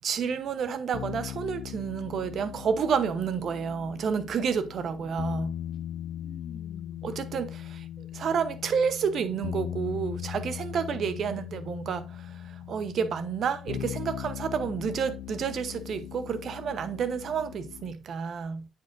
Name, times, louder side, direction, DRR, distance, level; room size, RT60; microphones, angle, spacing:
voice 1, 0.0-5.5 7.0-18.7, right 6 dB, 60° right, 0.9 m, -30 dB
sound 1, 0.9-17.9, left 11 dB, 75° left, 0.4 m, -39 dB
voice 2, 4.5-7.1 7.4-7.5 10.9-11.2, left 4 dB, 45° left, 1.5 m, -52 dB
9.0 x 5.3 x 2.6 m
supercardioid pair, 60°, 0 cm